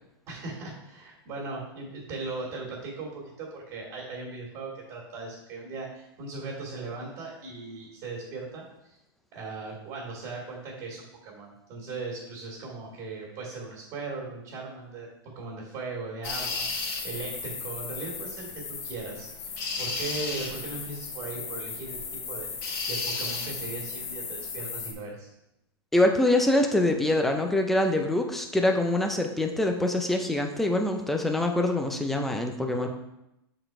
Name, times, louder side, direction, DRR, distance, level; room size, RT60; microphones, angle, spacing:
voice 1, 0.3-9.0 9.3-15.1 15.3-19.5 19.8-25.3 32.7-32.9, right 3 dB, 25° right, -3 dB, 2.1 m, -38 dB
sound 1, 16.2-24.9, left 4 dB, 40° left, 1.0 m, -34 dB
voice 2, 25.9-32.9, left 1 dB, ahead, 4 dB, 0.4 m, -24 dB
6.5 x 4.1 x 4.4 m, 0.85 s
supercardioid pair, 165°, 14 cm